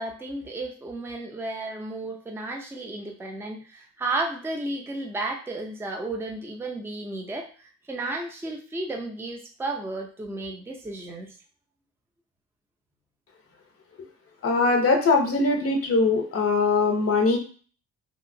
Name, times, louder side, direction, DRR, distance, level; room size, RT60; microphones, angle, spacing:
voice 1, 0.0-11.3, right 2 dB, 10° right, 1 dB, 0.5 m, -33 dB
voice 2, 14.4-17.4, left 3 dB, 50° left, 3 dB, 0.7 m, -21 dB
2.8 x 2.7 x 2.6 m, 0.40 s
cardioid pair, 90°, 30 cm